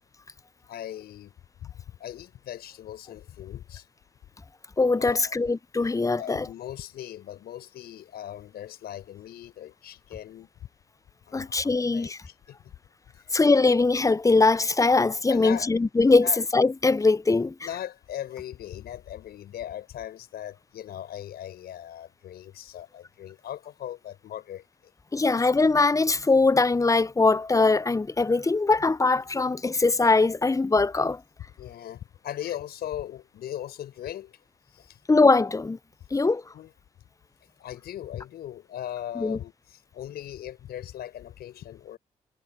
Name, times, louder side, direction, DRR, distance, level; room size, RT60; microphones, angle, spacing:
voice 1, 0.7-1.3 1.6-3.9 5.0-5.4 6.2-10.5 11.3-12.7 13.1-13.3 15.3-15.7 16.1-16.4 17.6-24.9 31.6-34.4 34.7-35.0 36.5-36.7 37.4-42.0, left 11 dB, 75° left, 5.4 m, -39 dB
voice 2, 4.8-6.5 11.3-12.2 13.3-17.5 25.1-31.2 35.1-35.8 36.1-36.4 39.2-39.4, left 3 dB, 20° left, 0.6 m, -21 dB
hypercardioid pair, 40°, 17 cm